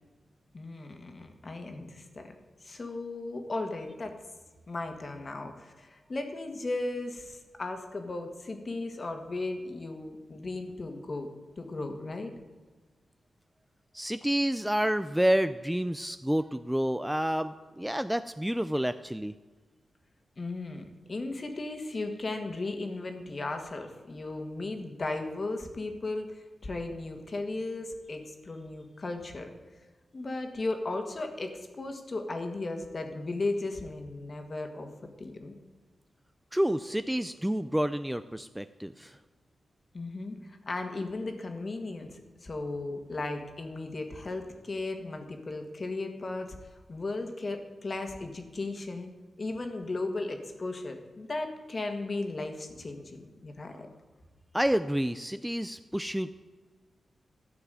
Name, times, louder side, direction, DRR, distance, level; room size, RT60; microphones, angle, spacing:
voice 1, 0.5-2.3 2.6-4.1 4.7-11.3 11.6-12.3 20.4-29.5 30.1-34.9 35.2-35.5 39.9-46.6 46.9-49.1 49.4-53.9, left 2 dB, 40° left, 5 dB, 1.7 m, -36 dB
voice 2, 13.9-19.3 36.5-39.2 54.5-56.3, equal, 5° right, 11 dB, 0.4 m, -29 dB
13.5 x 5.9 x 9.4 m, 1.3 s
wide cardioid pair, 110°, 0 cm